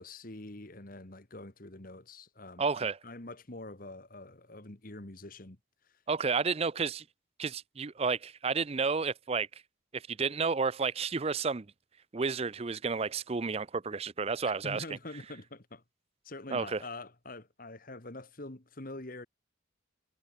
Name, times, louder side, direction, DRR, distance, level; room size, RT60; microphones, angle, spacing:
voice 1, 0.0-5.6 14.4-15.8 16.2-19.3, left 2 dB, 45° left, 1.7 m, -45 dB
voice 2, 2.6-3.0 6.1-7.0 7.4-9.5 9.9-11.7 12.1-14.8 16.5-16.8, right 5 dB, 30° right, 0.5 m, -31 dB
head